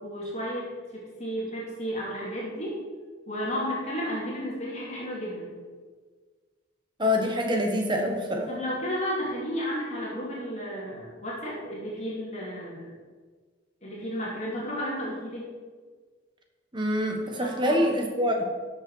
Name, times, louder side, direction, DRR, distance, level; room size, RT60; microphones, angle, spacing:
voice 1, 0.0-2.8 3.3-5.5 8.5-12.9 13.8-15.5 17.4-17.8, equal, 35° left, -5 dB, 2.5 m, -33 dB
voice 2, 7.0-8.5 16.7-18.4, left 1 dB, 25° right, 2 dB, 1.4 m, -25 dB
12.5 x 6.6 x 4.7 m, 1.5 s
head